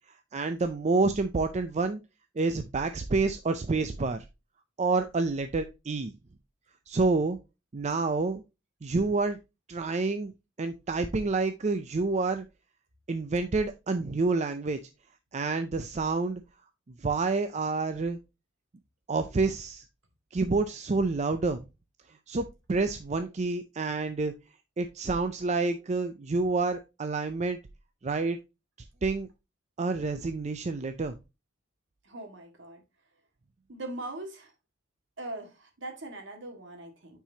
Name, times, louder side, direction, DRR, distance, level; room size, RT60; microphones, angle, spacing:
voice 1, 0.3-2.0 2.4-4.2 4.8-6.1 6.9-7.4 7.7-8.4 8.8-9.4 9.7-10.3 10.6-12.4 13.1-14.8 15.3-16.4 17.0-18.2 19.1-19.8 20.3-21.6 22.3-22.4 22.7-24.3 24.8-27.6 28.0-28.4 29.0-29.3 29.8-31.1, right 3 dB, 35° right, 0.5 m, -28 dB
voice 2, 32.0-32.8 33.7-34.5 35.2-37.2, right 2 dB, 65° right, 1.9 m, -41 dB
8.9 x 4.6 x 2.8 m
head